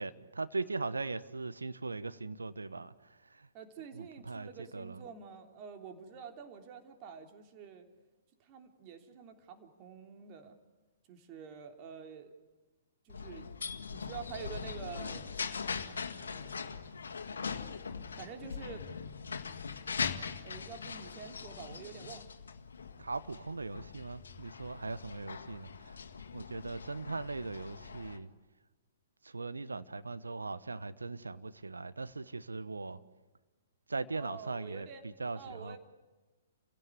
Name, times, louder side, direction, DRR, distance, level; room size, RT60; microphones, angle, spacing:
voice 1, 0.0-2.9 3.3-3.5 3.9-5.0 23.0-26.0 26.3-28.3 29.2-33.0 33.9-35.8, right 3 dB, 85° right, 14 dB, 1.2 m, -39 dB
voice 2, 3.5-7.9 8.4-10.6 11.1-12.3 13.0-13.5 13.9-15.4 16.2-16.9 18.2-18.9 20.4-22.3 34.1-35.0 35.3-35.8, right 7 dB, 35° right, 5 dB, 3.3 m, -48 dB
sound 1, 13.1-28.2, left 5 dB, 75° left, 1.9 m, -41 dB
30.0 x 16.5 x 9.8 m, 1.2 s
figure-of-eight pair, 120°, 0 cm